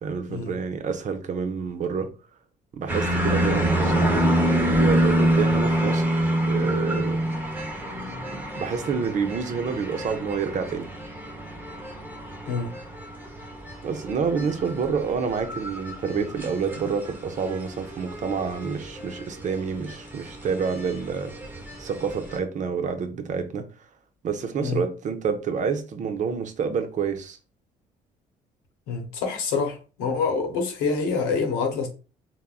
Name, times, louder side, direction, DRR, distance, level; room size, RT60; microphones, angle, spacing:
voice 1, 0.0-2.1 2.7-6.2 6.5-7.2 8.3-10.9 13.8-21.3 21.8-23.6 24.2-27.4, right 6 dB, 55° right, 0.6 m, -28 dB
sound 1, 2.9-22.4, right 1 dB, 10° right, 1.0 m, -27 dB
voice 2, 28.9-31.9, left 5 dB, 90° left, 0.8 m, -26 dB
3.4 x 2.1 x 2.3 m
supercardioid pair, 70°, 16 cm